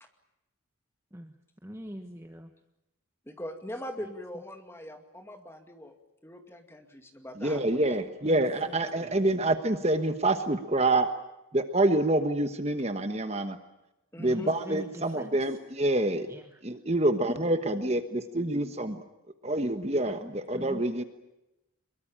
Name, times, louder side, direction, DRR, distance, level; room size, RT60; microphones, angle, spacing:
voice 1, 1.6-2.5 4.0-4.2 8.2-9.1 14.3-15.6 16.3-16.6 20.1-20.8, equal, 15° right, 6 dB, 1.2 m, -44 dB
voice 2, 3.3-5.9 6.2-8.0 14.1-14.5, left 1 dB, 10° left, 5 dB, 2.3 m, -42 dB
voice 3, 7.4-11.1 11.5-13.6 14.2-16.3 16.6-19.0 19.4-21.0, right 2 dB, 30° right, 9 dB, 1.2 m, -27 dB
23.5 x 23.0 x 8.8 m, 0.93 s
head